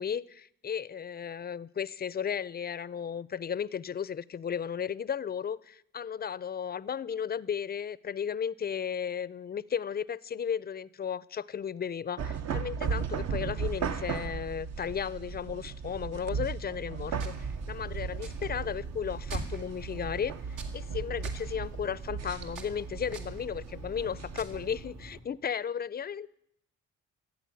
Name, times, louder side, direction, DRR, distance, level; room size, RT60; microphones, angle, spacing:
voice 1, 0.0-26.3, left 7 dB, 30° left, 21 dB, 0.5 m, -35 dB
sound 1, 12.2-24.8, right 6 dB, 60° right, 0.9 m, -36 dB
sound 2, 17.1-25.2, right 3 dB, 80° right, 2.3 m, -43 dB
14.5 x 8.1 x 9.5 m, 0.75 s
cardioid pair, 90°, 30 cm